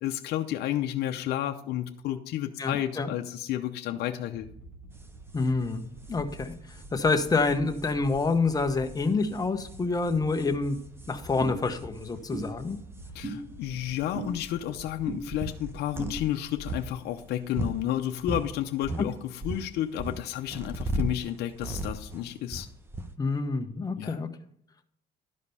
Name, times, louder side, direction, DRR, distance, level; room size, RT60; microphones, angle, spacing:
voice 1, 0.0-4.5 13.1-22.7 24.0-24.2, left 12 dB, 75° left, 5 dB, 0.7 m, -31 dB
voice 2, 2.6-3.1 5.3-5.8 6.1-6.5 6.9-10.8 11.1-12.8 23.2-24.3, left 3 dB, 20° left, 6 dB, 1.0 m, -27 dB
sound 1, 4.4-16.2, right 3 dB, 65° right, 3.6 m, -47 dB
sound 2, 5.0-5.1 5.4-5.5 5.8-5.9 6.0-13.1 13.9-14.0 14.2-18.5 18.8-23.2, right 2 dB, 15° right, 0.8 m, -37 dB
sound 3, 11.4-11.5 12.3-12.5 13.2-13.4 14.1-14.3 15.1-15.2 16.0-16.1, right 2 dB, 50° right, 3.1 m, -34 dB
11.5 x 5.1 x 5.5 m, 0.67 s
cardioid pair, 110°, 17 cm